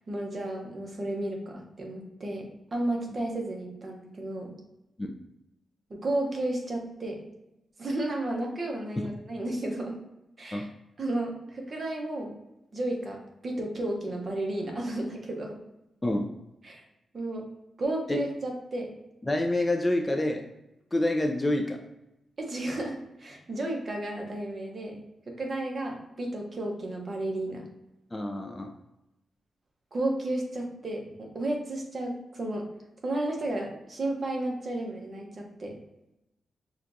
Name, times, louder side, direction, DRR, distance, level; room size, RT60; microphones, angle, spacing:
voice 1, 0.0-4.5 5.9-7.2 7.8-9.9 10.4-10.7 11.0-12.4 12.7-13.2 13.4-15.6 16.6-16.8 17.1-17.5 17.8-18.9 22.4-27.7 29.9-32.7 33.0-35.8, right 1 dB, 40° right, 0 dB, 0.9 m, -33 dB
voice 2, 19.3-20.4 20.9-21.8 28.1-28.7, left 1 dB, 15° left, 3 dB, 0.4 m, -27 dB
5.8 x 2.3 x 2.6 m, 0.90 s
wide cardioid pair, 115°, 0 cm